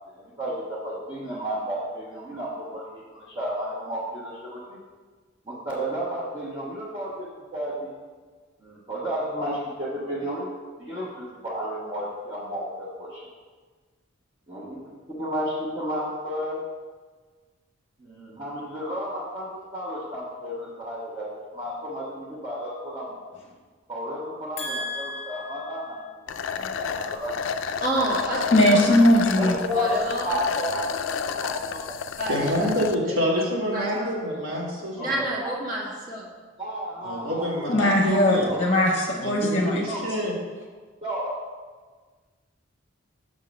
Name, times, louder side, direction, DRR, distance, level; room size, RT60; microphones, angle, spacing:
voice 1, 0.1-4.8 5.5-7.9 8.6-10.5 10.8-13.2 14.5-14.8 15.1-16.6 18.0-23.2 23.9-26.0 26.3-26.5 26.9-27.5 29.4-30.0 30.2-32.0 35.0-35.6 36.6-38.7 39.9-40.0 41.0-41.4, equal, 25° right, -9 dB, 1.0 m, -32 dB
voice 2, 24.6-25.6 28.5-29.5 37.7-39.8, left 1 dB, 30° left, -1 dB, 0.9 m, -20 dB
sound 1, 26.3-33.0, left 6 dB, 65° left, 0.3 m, -30 dB
voice 3, 27.8-28.8 29.7-30.3 32.2-32.7 33.7-34.1 35.0-36.3, right 1 dB, 40° right, -4 dB, 1.5 m, -29 dB
voice 4, 32.3-35.2 37.0-38.5 39.2-40.4, equal, 70° right, -3 dB, 1.7 m, -27 dB
6.3 x 3.7 x 6.2 m, 1.4 s
head